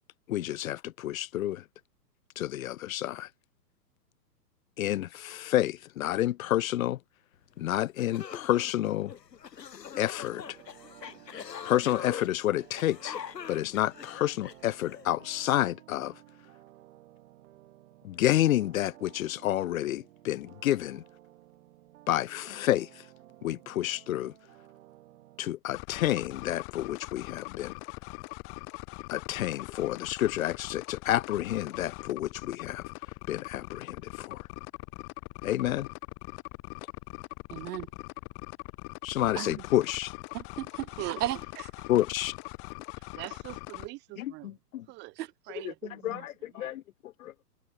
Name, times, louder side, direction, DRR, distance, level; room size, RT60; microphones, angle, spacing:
voice 1, 0.3-1.6 2.4-3.3 4.8-7.0 7.6-9.1 10.0-10.6 11.6-13.2 13.5-16.2 18.0-21.0 22.1-23.1 23.4-24.3 25.4-27.7 29.1-32.8 33.3-34.5 35.4-35.9 39.0-40.1 41.9-42.3 44.2-44.9 45.5-47.3, left 13 dB, 55° left, 0.9 m, -29 dB
sound 1, 7.6-7.7 8.0-15.1, left 8 dB, 85° left, 3.4 m, -42 dB
sound 2, 10.3-25.5, right 14 dB, 50° right, 4.5 m, -55 dB
sound 3, 25.7-43.9, left 33 dB, 25° left, 1.2 m, -42 dB
voice 2, 37.5-37.9 39.4-39.5 40.3-41.7 45.2-45.3 45.8-45.9, right 14 dB, 70° right, 0.5 m, -35 dB
voice 3, 43.2-44.5 44.9-46.0 46.6-46.7, right 22 dB, 20° right, 1.0 m, -42 dB
hypercardioid pair, 140°, 49 cm